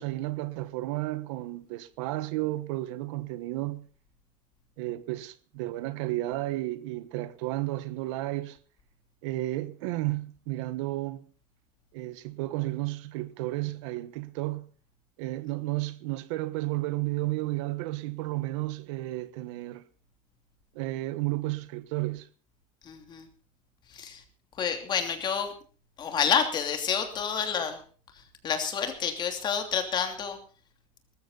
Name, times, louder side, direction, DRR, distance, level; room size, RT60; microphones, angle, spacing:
voice 1, 0.0-3.9 4.8-8.6 9.2-11.3 11.9-14.7 15.2-19.8 20.7-22.3, right 18 dB, 85° right, 1.3 m, -32 dB
voice 2, 22.8-23.3 23.9-24.2 24.6-25.5 26.0-27.8 28.4-30.4, left 7 dB, 30° left, 2.9 m, -29 dB
19.5 x 14.0 x 4.0 m
cardioid pair, 160°, 16 cm